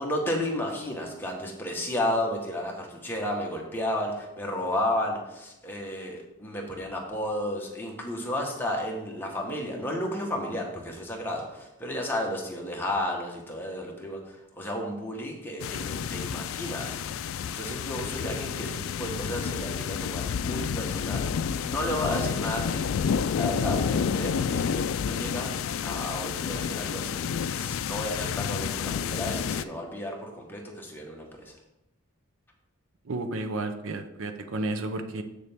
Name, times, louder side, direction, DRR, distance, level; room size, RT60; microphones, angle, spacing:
voice 1, 0.0-14.2 14.6-17.0 17.6-21.3 21.6-23.0 23.3-25.5 25.8-31.3, left 1 dB, 10° left, -1 dB, 1.3 m, -32 dB
sound 1, 15.6-29.6, left 7 dB, 70° left, 0.3 m, -30 dB
voice 2, 33.1-35.2, right 2 dB, 70° right, 8 dB, 0.6 m, -32 dB
7.8 x 6.7 x 3.6 m, 0.92 s
head